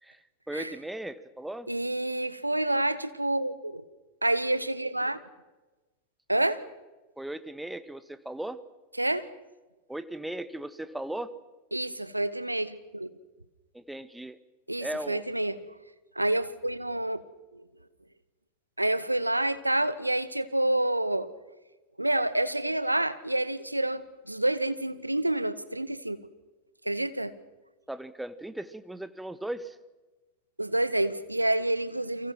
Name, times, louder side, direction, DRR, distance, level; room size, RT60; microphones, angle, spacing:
voice 1, 0.0-1.7 7.2-8.6 9.9-11.3 13.7-14.4 14.8-15.2 27.9-29.8, right 1 dB, 5° right, 14 dB, 1.3 m, -37 dB
voice 2, 1.7-3.8 4.2-5.2 6.3-6.6 9.0-9.3 11.7-13.1 14.7-15.6 16.1-17.2 17.5-17.6 18.8-21.3 22.0-26.2 26.8-27.3 30.6-32.3, right 1 dB, 85° right, 13 dB, 1.2 m, -28 dB
30.0 x 24.5 x 6.0 m, 1.1 s
figure-of-eight pair, 90°, 0 cm